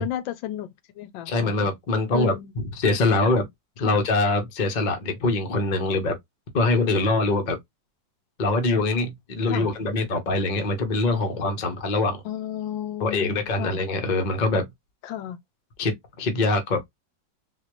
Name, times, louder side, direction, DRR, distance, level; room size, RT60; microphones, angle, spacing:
voice 1, 0.0-1.6 2.1-2.5 3.8-4.0 9.5-9.7 12.2-13.8 15.0-15.4, left 12 dB, 80° left, 1.3 m, -32 dB
voice 2, 1.3-3.5 3.8-6.2 6.5-7.6 8.4-12.2 13.0-14.7 15.8-16.9, left 2 dB, 45° left, 0.6 m, -23 dB
4.0 x 2.4 x 3.0 m
omnidirectional pair, 2.1 m